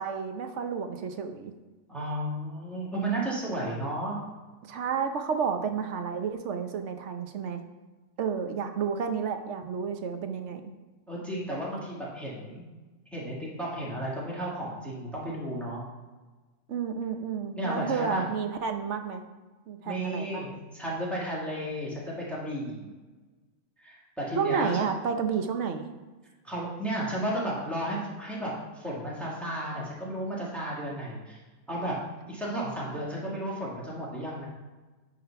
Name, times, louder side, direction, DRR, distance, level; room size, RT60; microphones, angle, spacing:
voice 1, 0.0-1.5 4.7-7.6 8.2-10.7 16.7-19.2 19.7-20.4 24.4-25.9, right 6 dB, 65° right, 6 dB, 1.0 m, -31 dB
voice 2, 1.9-4.2 11.1-12.6 13.1-15.8 17.6-18.3 19.8-22.9 23.8-24.9 26.4-31.4 31.7-31.9 32.3-34.4, right 1 dB, ahead, -6 dB, 1.8 m, -33 dB
9.2 x 3.9 x 5.6 m, 1.3 s
omnidirectional pair, 1.3 m